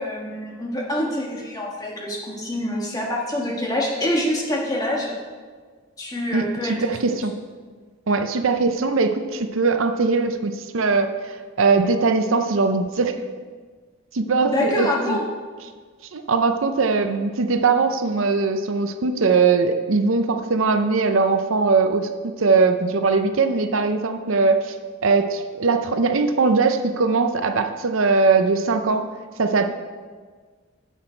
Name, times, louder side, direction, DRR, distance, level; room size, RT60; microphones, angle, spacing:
voice 1, 0.0-5.1 6.0-7.0 14.4-15.3, left 1 dB, 15° left, -2 dB, 1.5 m, -26 dB
voice 2, 6.3-7.3 8.1-13.2 14.1-15.2 16.1-24.7 25.0-29.1 29.4-29.7, right 4 dB, 70° right, 8 dB, 0.6 m, -20 dB
10.0 x 7.7 x 4.5 m, 1.5 s
head